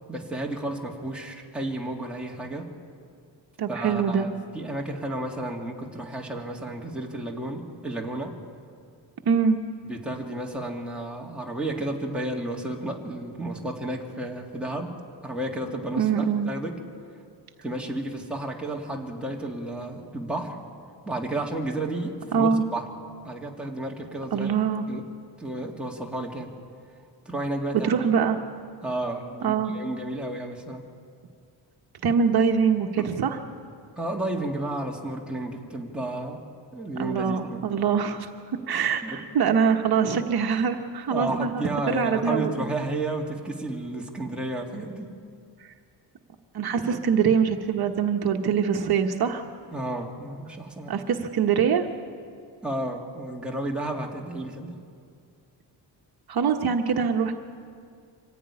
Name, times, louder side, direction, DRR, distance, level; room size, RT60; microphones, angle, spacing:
voice 1, 0.1-2.7 3.7-8.3 9.8-15.0 15.2-16.8 17.6-20.6 21.1-22.9 23.2-24.6 24.9-25.0 25.4-26.5 27.3-28.1 28.8-30.8 33.0-33.1 34.0-36.4 36.7-37.6 39.0-39.2 41.1-45.1 49.7-50.9 52.6-54.8, right 1 dB, ahead, -2 dB, 2.2 m, -32 dB
voice 2, 3.6-4.3 9.2-9.6 16.0-16.5 22.3-22.6 24.3-24.8 27.8-28.4 29.4-29.7 32.0-33.4 37.0-38.3 38.7-42.6 46.5-49.4 50.9-51.9 56.3-57.3, right 6 dB, 60° right, 4 dB, 1.2 m, -23 dB
25.0 x 15.0 x 9.7 m, 2.3 s
wide cardioid pair, 155°, 42 cm